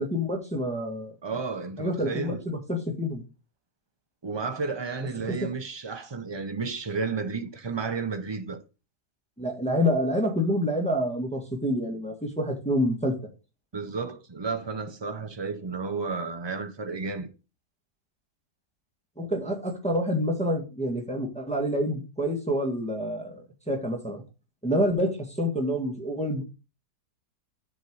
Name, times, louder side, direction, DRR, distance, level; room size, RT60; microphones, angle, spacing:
voice 1, 0.0-1.1 1.8-3.2 5.2-5.3 9.4-13.1 19.2-24.2 24.6-26.4, equal, 5° left, 1.6 m, -27 dB
voice 2, 1.2-2.4 4.2-8.6 13.7-17.3, right 4 dB, 45° right, 0.3 m, -32 dB
7.8 x 3.7 x 6.3 m
omnidirectional pair, 1.7 m